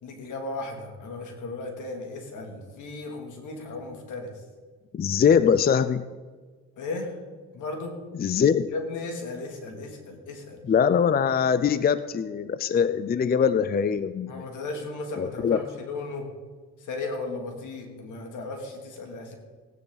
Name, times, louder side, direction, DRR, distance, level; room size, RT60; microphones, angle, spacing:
voice 1, 0.0-4.3 6.8-7.1 7.5-8.0 8.7-10.6 14.3-16.3 16.8-19.4, left 3 dB, 80° left, 2 dB, 2.7 m, -35 dB
voice 2, 4.9-6.0 8.2-8.7 10.7-14.4 15.2-15.6, left 7 dB, 30° left, 14 dB, 0.5 m, -22 dB
17.5 x 9.8 x 4.0 m, 1.4 s
cardioid pair, 90°, 30 cm